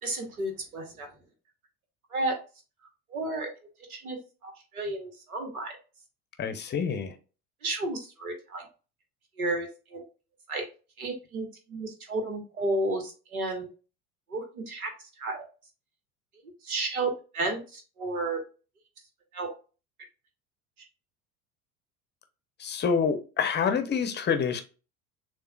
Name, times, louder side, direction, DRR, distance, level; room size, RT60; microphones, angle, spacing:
voice 1, 0.0-1.1 2.1-2.3 3.1-3.5 3.9-4.2 4.4-5.8 7.6-8.6 9.4-10.0 10.5-10.6 11.0-13.7 14.3-14.9 15.2-15.5 16.6-18.4 19.3-19.5, right 2 dB, 75° right, 1.3 m, -32 dB
voice 2, 6.4-7.1 22.6-24.6, left 6 dB, 25° left, 0.8 m, -27 dB
6.6 x 2.4 x 2.3 m
figure-of-eight pair, 65°, 44 cm